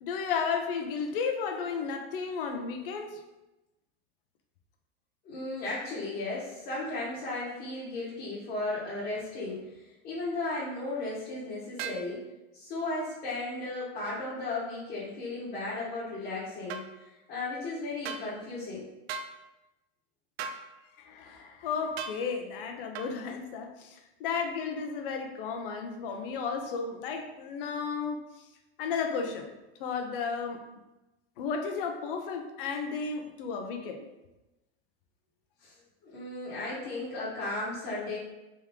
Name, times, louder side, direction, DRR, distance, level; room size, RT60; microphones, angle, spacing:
voice 1, 0.0-3.2 21.0-28.2 28.8-29.5 29.8-30.6 31.4-34.0, left 5 dB, 60° left, 5 dB, 0.6 m, -33 dB
voice 2, 5.2-12.2 12.5-16.8 17.3-18.9 35.6-35.7 36.0-38.2, left 2 dB, 30° left, -10 dB, 1.2 m, -35 dB
sound 1, 11.8-12.1 16.7-16.9 18.0-18.3 19.1-19.3 20.4-20.6 22.0-22.2 22.9-23.1, right 6 dB, 80° right, 0.5 m, -36 dB
3.6 x 3.0 x 3.5 m, 1.0 s
supercardioid pair, 155°, 30 cm